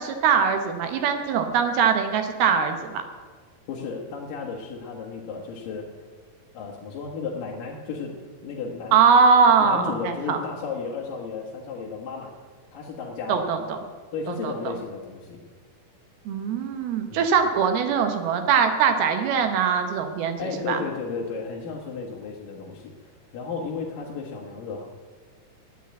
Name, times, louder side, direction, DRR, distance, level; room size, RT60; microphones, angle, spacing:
voice 1, 0.0-3.0 8.9-10.4 13.3-13.8 14.3-14.7 16.3-20.8, right 6 dB, 75° right, 6 dB, 2.7 m, -22 dB
voice 2, 3.7-5.9 6.5-8.1 8.4-9.0 9.6-12.3 12.7-13.5 14.1-15.4 17.1-17.3 20.4-24.9, left 5 dB, 65° left, -2 dB, 2.6 m, -33 dB
10.0 x 10.0 x 8.5 m, 1.5 s
omnidirectional pair, 4.9 m